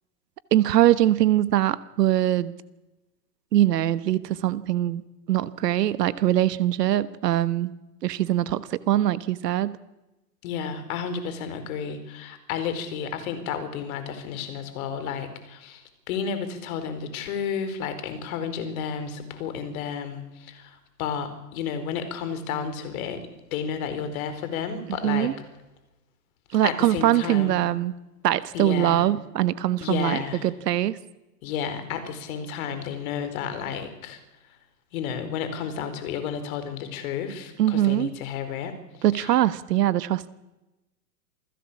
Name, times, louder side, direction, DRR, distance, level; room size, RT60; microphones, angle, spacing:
voice 1, 0.5-2.5 3.5-5.0 5.3-7.7 8.0-9.8 25.0-25.3 26.5-27.9 28.2-31.0 37.6-38.1 39.0-40.3, right 13 dB, 70° right, 16 dB, 1.3 m, -22 dB
voice 2, 10.4-23.2 23.5-25.3 26.5-27.6 28.5-29.0 29.8-30.5 31.4-34.2 34.5-34.6 34.9-38.7 39.1-39.4, left 7 dB, 55° left, 10 dB, 4.7 m, -32 dB
28.0 x 16.0 x 8.6 m, 1.0 s
hypercardioid pair, 115°, 49 cm